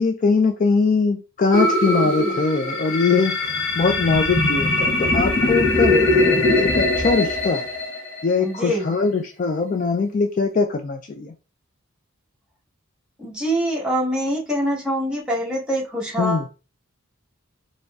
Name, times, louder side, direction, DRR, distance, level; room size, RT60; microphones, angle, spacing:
voice 1, 0.0-7.7 8.2-11.3 16.2-16.4, left 4 dB, 40° left, 0.3 m, -22 dB
sound 1, 1.5-8.6, left 2 dB, 65° left, 1.2 m, -21 dB
voice 2, 5.7-6.4 8.4-8.9 13.2-16.5, equal, 5° right, 1.1 m, -25 dB
3.8 x 3.1 x 2.3 m
head